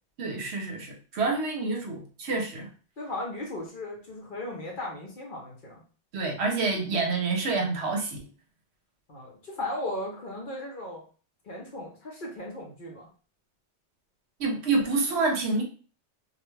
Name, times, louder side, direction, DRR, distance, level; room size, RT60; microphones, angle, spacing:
voice 1, 0.2-2.7 6.1-8.2 14.4-15.6, right 3 dB, 70° right, 2 dB, 0.9 m, -27 dB
voice 2, 3.0-5.8 9.1-11.0 11.4-13.1, left 1 dB, 50° left, -1 dB, 0.7 m, -36 dB
2.3 x 2.2 x 3.1 m, 0.38 s
omnidirectional pair, 1.2 m